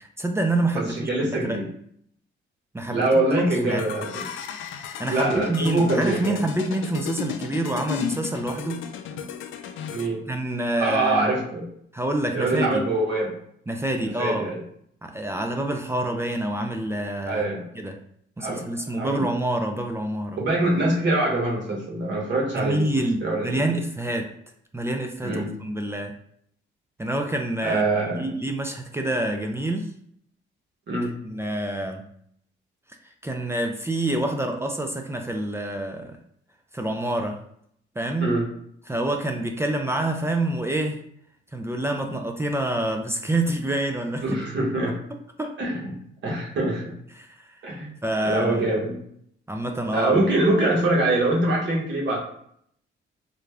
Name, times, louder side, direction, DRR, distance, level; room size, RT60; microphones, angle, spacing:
voice 1, 0.0-1.6 2.7-3.2 3.6-3.8 4.8-8.8 10.3-11.4 11.9-12.8 13.7-14.5 15.0-17.5 17.8-17.9 18.4-20.4 22.5-24.3 24.7-26.1 27.0-27.8 28.1-29.9 31.2-32.0 33.2-36.2 36.7-37.4 38.0-38.4 38.9-41.0 41.5-44.4 45.4-45.5 47.1-47.6 48.0-48.7 49.5-50.1, right 1 dB, 15° right, 4 dB, 0.4 m, -27 dB
voice 2, 0.7-1.7 2.9-4.2 5.1-6.4 9.9-10.2 10.8-11.7 12.3-13.3 14.2-14.6 17.3-17.7 18.4-18.6 18.9-19.3 20.4-23.7 25.2-25.5 27.6-28.2 30.9-31.1 38.2-38.5 44.2-45.0 45.6-46.0 46.2-46.9 47.6-47.9 48.2-49.0 49.9-52.2, right 2 dB, 65° right, -3 dB, 1.5 m, -24 dB
sound 1, 3.7-10.1, left 8 dB, 75° left, 0.4 m, -34 dB
3.8 x 2.3 x 3.3 m, 0.68 s
cardioid pair, 90°, 20 cm